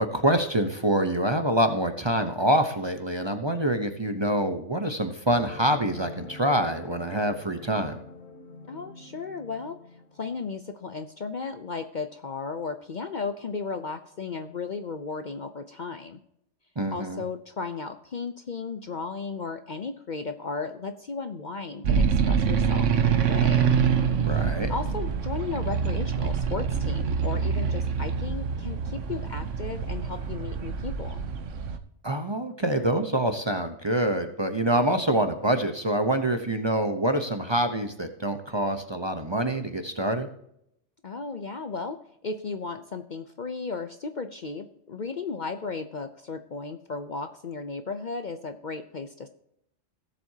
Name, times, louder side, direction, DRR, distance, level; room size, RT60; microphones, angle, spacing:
voice 1, 0.0-8.0 16.8-17.2 24.2-24.7 32.0-40.3, right 1 dB, 25° right, 7 dB, 0.8 m, -26 dB
sound 1, 5.3-10.5, left 3 dB, 60° left, 1.7 m, -45 dB
voice 2, 8.7-9.8 10.1-16.2 16.9-23.7 24.3-24.4 24.7-31.2 41.0-42.0 42.2-49.3, left 4 dB, 45° left, 8 dB, 0.7 m, -35 dB
sound 2, 21.8-31.8, right 6 dB, 80° right, 1.3 m, -25 dB
17.5 x 7.6 x 2.8 m, 0.76 s
omnidirectional pair, 1.3 m